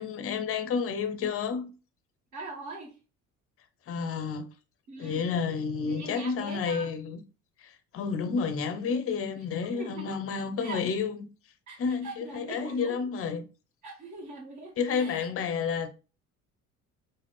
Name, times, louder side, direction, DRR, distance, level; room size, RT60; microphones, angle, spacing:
voice 1, 0.0-1.7 3.9-4.5 5.0-7.2 7.6-11.3 11.8-13.5 14.8-15.9, left 5 dB, 30° left, 0.7 m, -30 dB
voice 2, 2.3-2.9 4.9-5.2 5.8-6.9 9.6-10.2 10.6-10.8 11.7-13.0 13.8-15.3, right 3 dB, 40° right, 1.8 m, -42 dB
4.8 x 2.4 x 3.5 m
figure-of-eight pair, 60°, 44 cm